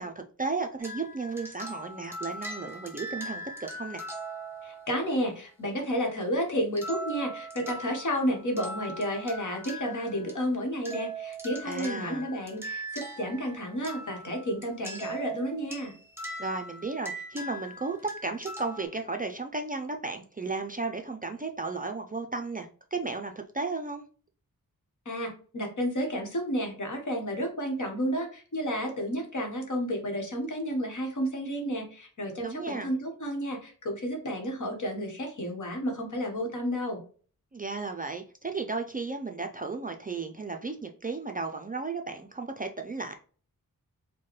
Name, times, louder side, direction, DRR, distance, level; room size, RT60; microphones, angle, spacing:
voice 1, 0.0-4.0 11.6-12.3 16.4-24.0 32.4-32.9 37.5-43.1, right 3 dB, 25° right, 4 dB, 0.4 m, -34 dB
sound 1, 0.8-5.1 6.8-10.4 10.8-18.9, right 1 dB, 5° right, 0.9 m, -40 dB
voice 2, 4.6-15.9 25.0-37.0, equal, 60° left, 2 dB, 1.2 m, -31 dB
4.5 x 2.2 x 3.0 m, 0.41 s
wide cardioid pair, 105°, 35 cm